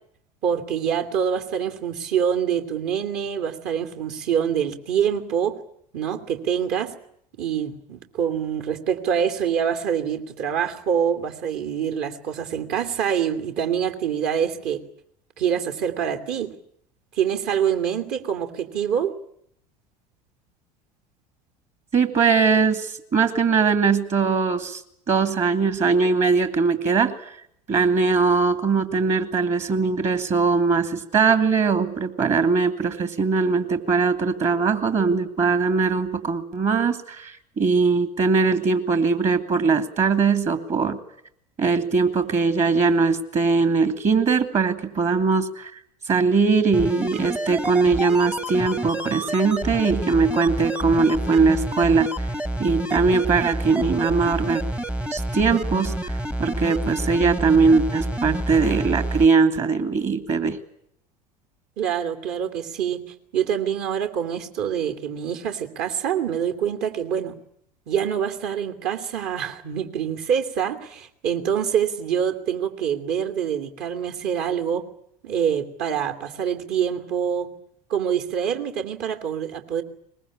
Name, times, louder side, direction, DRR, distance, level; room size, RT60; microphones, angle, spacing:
voice 1, 0.4-5.6 5.9-6.9 7.4-14.8 15.4-16.5 17.2-19.1 61.8-63.0 63.3-67.3 67.9-74.8 75.2-77.5 77.9-79.8, right 8 dB, 50° right, 2.8 m, -25 dB
voice 2, 21.9-24.8 25.1-27.3 27.7-41.0 41.6-45.7 46.1-52.1 52.6-54.6 55.1-56.1 56.4-60.6, right 4 dB, 35° right, 2.6 m, -21 dB
sound 1, 46.7-59.3 59.6-59.7, right 1 dB, 5° right, 1.0 m, -28 dB
22.5 x 21.0 x 9.9 m
figure-of-eight pair, 75°, 21 cm